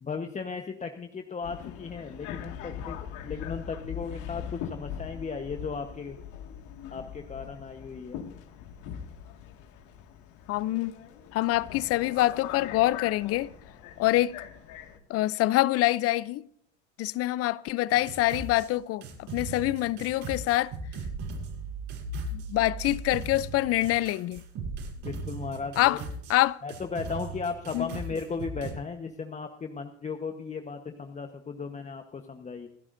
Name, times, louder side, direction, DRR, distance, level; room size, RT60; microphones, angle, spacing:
voice 1, 0.0-3.0 3.2-6.2 6.9-8.2 25.0-26.0 26.6-32.7, left 5 dB, 20° left, 1.1 m, -36 dB
Subway metro underground, 1.4-15.0, left 9 dB, 60° left, 2.0 m, -41 dB
voice 2, 10.5-10.9 11.3-13.5 14.0-14.4 15.1-16.4 17.0-19.0 19.3-20.7 22.3-24.4 25.8-26.0 26.3-26.6 27.7-27.9, left 16 dB, 45° left, 0.6 m, -25 dB
sound 1, 17.9-18.7 19.0-26.4 26.7-28.7, right 3 dB, 60° right, 6.6 m, -38 dB
28.0 x 9.7 x 2.6 m
hypercardioid pair, 100°, 35 cm